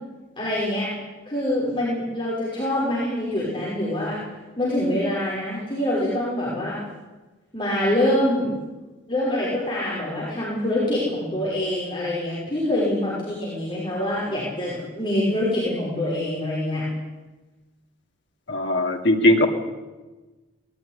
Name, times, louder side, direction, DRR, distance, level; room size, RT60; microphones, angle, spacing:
voice 1, 0.4-0.9 1.3-4.2 4.6-6.8 7.5-8.5 9.1-16.8, left 1 dB, 25° left, -7 dB, 6.0 m, -25 dB
voice 2, 18.5-19.5, left 1 dB, 60° left, 3 dB, 2.7 m, -19 dB
20.0 x 14.5 x 10.0 m, 1.2 s
head